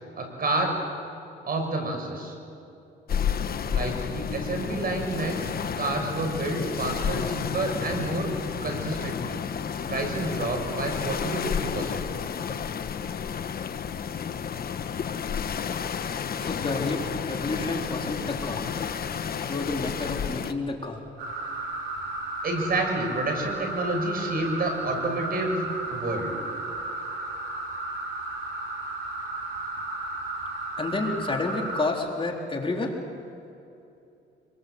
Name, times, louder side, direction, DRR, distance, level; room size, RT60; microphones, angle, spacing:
voice 1, 0.2-0.8 1.4-2.3 3.7-5.4 5.8-8.4 8.6-9.4 9.9-12.1 22.4-26.3, right 2 dB, 50° right, 3 dB, 6.7 m, -29 dB
sound 1, 3.1-20.5, left 7 dB, 50° left, 1.2 m, -31 dB
voice 2, 16.4-18.6 19.4-21.0 30.8-33.0, left 2 dB, 25° left, 0 dB, 3.8 m, -30 dB
sound 2, 21.2-31.9, right 2 dB, 90° right, 4.8 m, -34 dB
26.0 x 23.5 x 7.9 m, 2.8 s
cardioid pair, 90°, 20 cm